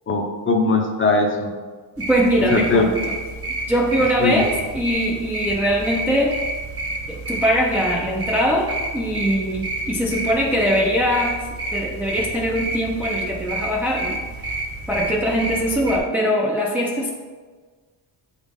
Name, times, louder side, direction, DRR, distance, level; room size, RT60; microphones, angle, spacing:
voice 1, 0.1-1.5 2.5-2.9 4.2-4.4, left 3 dB, 30° left, 3 dB, 0.7 m, -19 dB
sound 1, 2.0-16.0, right 2 dB, 30° right, 0.9 m, -29 dB
voice 2, 2.1-2.9 3.7-6.3 7.1-11.4 11.7-14.2 14.4-14.6 14.9-17.1, equal, 5° right, -2 dB, 0.5 m, -21 dB
7.9 x 4.1 x 3.6 m, 1.4 s
cardioid pair, 145°, 43 cm